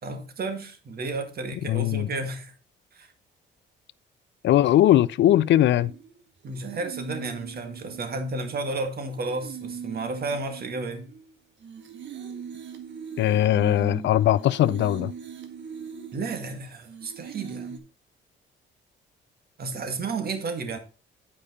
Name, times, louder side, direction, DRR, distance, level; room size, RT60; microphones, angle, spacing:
voice 1, 0.0-2.5 2.9-3.1 6.4-11.1 16.1-17.8 19.6-20.8, right 3 dB, 50° right, 1.8 m, -32 dB
voice 2, 1.7-2.1 4.4-5.9 13.2-15.1, left 12 dB, 65° left, 0.5 m, -20 dB
sound 1, 5.6-17.8, right 7 dB, 65° right, 1.5 m, -40 dB
10.0 x 5.0 x 4.1 m
cardioid pair, 90°, 20 cm